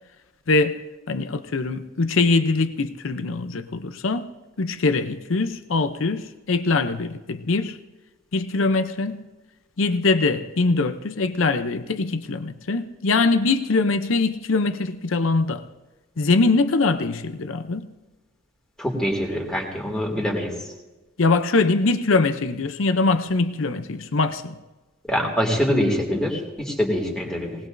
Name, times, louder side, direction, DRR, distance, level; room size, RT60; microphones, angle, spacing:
voice 1, 0.5-4.3 4.6-7.8 8.3-9.2 9.8-15.6 16.2-17.9 21.2-24.6, left 3 dB, 70° left, 0.6 m, -22 dB
voice 2, 18.8-20.5 25.1-27.6, equal, 5° left, 2.5 m, -24 dB
19.5 x 19.0 x 2.6 m
head